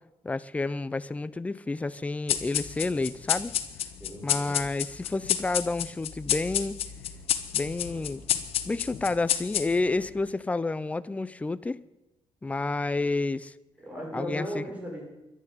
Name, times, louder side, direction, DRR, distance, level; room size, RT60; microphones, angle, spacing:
voice 1, 0.2-3.5 4.2-6.8 7.5-8.2 8.6-11.8 12.4-13.5 14.1-14.6, left 3 dB, 15° left, 16 dB, 0.5 m, -30 dB
sound 1, 2.3-10.0, left 10 dB, 90° left, 1.1 m, -30 dB
voice 2, 4.0-4.6 13.8-15.0, equal, 15° right, -1 dB, 6.0 m, -36 dB
11.5 x 11.0 x 9.4 m, 0.96 s
cardioid pair, 130°, 10 cm